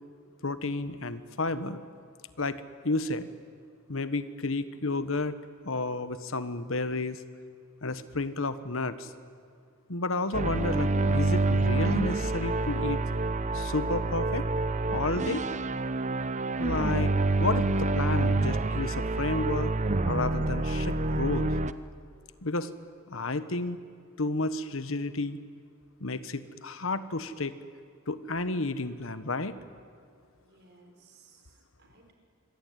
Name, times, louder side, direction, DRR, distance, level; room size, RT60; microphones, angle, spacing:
voice 1, 0.4-1.8 2.4-2.6 2.8-3.3 3.9-5.4 5.6-7.2 7.8-9.1 9.9-13.0 13.5-14.4 14.9-15.5 16.6-17.1 17.4-19.7 20.1-21.5 22.4-22.7 23.1-23.8 24.2-25.4 26.0-27.5 28.1-29.5, left 2 dB, 70° left, 12 dB, 1.3 m, -31 dB
sound 1, 10.3-21.7, right 2 dB, 35° right, 0.8 m, -27 dB
voice 2, 30.4-32.1, right 3 dB, 55° right, 3 dB, 5.1 m, -59 dB
26.5 x 23.5 x 9.3 m, 2.2 s
head